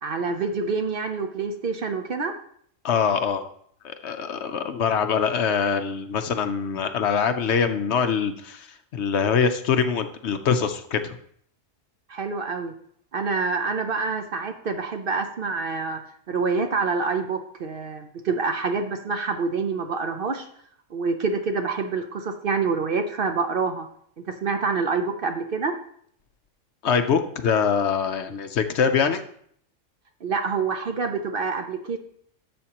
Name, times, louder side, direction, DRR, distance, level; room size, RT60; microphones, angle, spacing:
voice 1, 0.0-2.3 12.1-12.7 13.1-16.0 16.3-20.5 20.9-23.9 24.3-25.7 30.2-32.0, right 4 dB, 55° right, 5 dB, 0.7 m, -26 dB
voice 2, 2.8-3.4 3.8-8.7 8.9-11.2 26.8-29.2, left 6 dB, 65° left, 8 dB, 0.9 m, -23 dB
12.0 x 7.2 x 2.9 m, 0.64 s
omnidirectional pair, 1.3 m